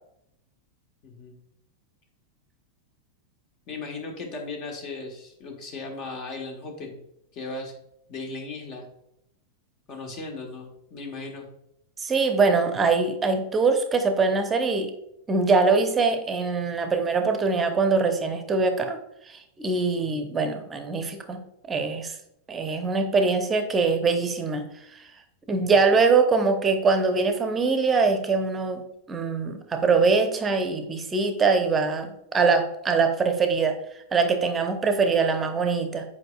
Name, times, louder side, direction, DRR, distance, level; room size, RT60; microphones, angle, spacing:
voice 1, 1.0-1.3 3.7-7.0 7.3-7.7 8.1-8.8 9.9-11.5 20.0-20.2 25.6-25.8, left 3 dB, 40° left, 2 dB, 1.4 m, -37 dB
voice 2, 12.0-14.9 15.3-19.0 19.3-21.4 21.7-22.1 22.5-24.6 24.9-25.1 25.5-28.8 29.1-33.8 34.1-36.0, right 4 dB, 20° right, 7 dB, 0.8 m, -23 dB
7.9 x 5.0 x 2.4 m, 0.79 s
figure-of-eight pair, 90°, 0 cm